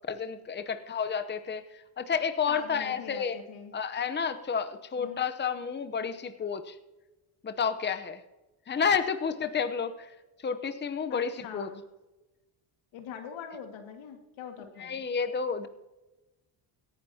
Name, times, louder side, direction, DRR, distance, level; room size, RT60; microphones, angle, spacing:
voice 1, 0.1-3.4 3.7-6.8 7.4-8.2 8.7-11.7 14.8-15.7, left 6 dB, 25° left, 10 dB, 0.8 m, -31 dB
voice 2, 2.5-3.7 5.0-5.2 11.1-11.8 12.9-15.0, left 7 dB, 80° left, 5 dB, 2.0 m, -43 dB
17.5 x 10.5 x 2.8 m, 1.1 s
cardioid pair, 80°, 47 cm